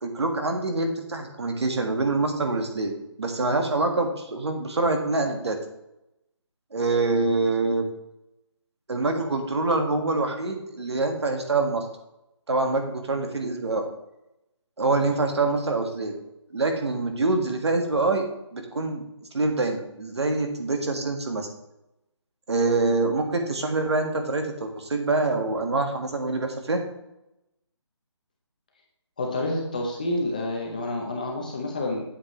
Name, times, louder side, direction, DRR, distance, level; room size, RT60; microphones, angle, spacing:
voice 1, 0.0-5.6 6.7-7.9 8.9-11.9 12.5-13.8 14.8-16.1 16.5-18.2 18.5-19.0 19.3-21.5 22.5-26.8, right 3 dB, 65° right, 4 dB, 1.7 m, -25 dB
voice 2, 29.2-32.0, left 2 dB, 15° left, 0 dB, 0.7 m, -28 dB
8.1 x 7.9 x 3.1 m, 0.89 s
hypercardioid pair, 175°, 15 cm